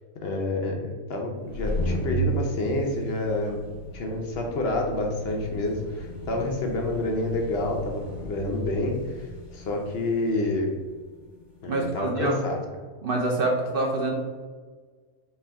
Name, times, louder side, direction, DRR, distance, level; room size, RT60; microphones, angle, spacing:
voice 1, 0.2-9.3 9.5-10.7 11.6-12.6, left 2 dB, 60° left, 1 dB, 0.8 m, -28 dB
sound 1, 1.3-11.8, right 1 dB, ahead, 1.2 m, -35 dB
voice 2, 11.7-12.4 13.0-14.1, right 2 dB, 60° right, 0 dB, 0.7 m, -26 dB
4.4 x 2.5 x 3.4 m, 1.5 s
omnidirectional pair, 1.3 m